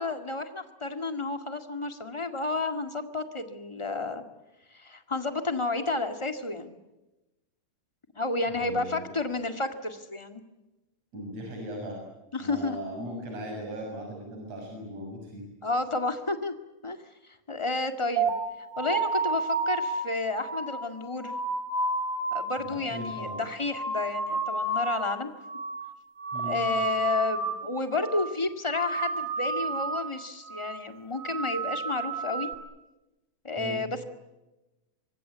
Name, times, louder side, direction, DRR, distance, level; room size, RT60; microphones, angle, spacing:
voice 1, 0.0-4.2 4.7-6.8 8.1-10.4 12.3-12.8 15.6-16.5 16.8-17.0 17.2-18.3 18.8-21.3 22.3-25.3 26.4-32.5 33.4-34.0, left 3 dB, 15° left, 7 dB, 1.2 m, -31 dB
voice 2, 8.5-9.1 11.1-12.0 12.4-15.4 22.6-23.4 26.3-26.6 33.6-33.8, right 1 dB, 50° right, 1 dB, 7.9 m, -38 dB
sound 1, 18.2-25.1 25.4-25.9 26.2-27.7 27.9-28.4 28.7-30.1 30.5-30.8 31.2-32.5, right 3 dB, 70° right, 4.5 m, -31 dB
25.0 x 24.5 x 8.2 m, 1.0 s
omnidirectional pair, 3.7 m